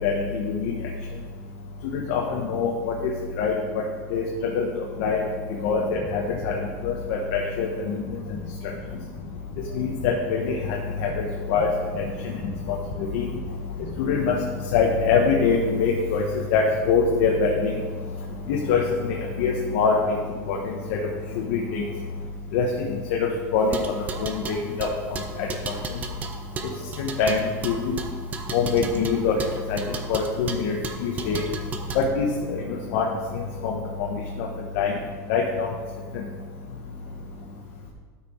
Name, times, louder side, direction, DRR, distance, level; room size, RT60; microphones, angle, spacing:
voice 1, 0.0-0.7 1.8-2.7 3.4-3.6 4.1-4.2 4.5-5.2 5.6-6.5 6.8-7.9 9.7-10.6 11.0-11.1 11.5-11.7 11.9-12.0 12.4-12.8 13.1-13.2 14.0-14.3 14.7-16.2 16.5-17.7 18.5-19.9 20.5-20.6 21.5-21.8 22.5-22.9 23.5-23.8 24.2-24.4 24.8-24.9 27.0-28.0 28.5-29.4 29.7-29.8 30.1-30.8 31.0-31.4 31.9-32.6 32.9-33.1 33.6-33.7 34.7-34.9 35.3-35.7, left 5 dB, 65° left, -1 dB, 1.3 m, -23 dB
sound 1, 23.6-32.1, right 4 dB, 20° right, 0.7 m, -35 dB
12.5 x 6.1 x 4.6 m, 1.5 s
cardioid pair, 170°, 7 cm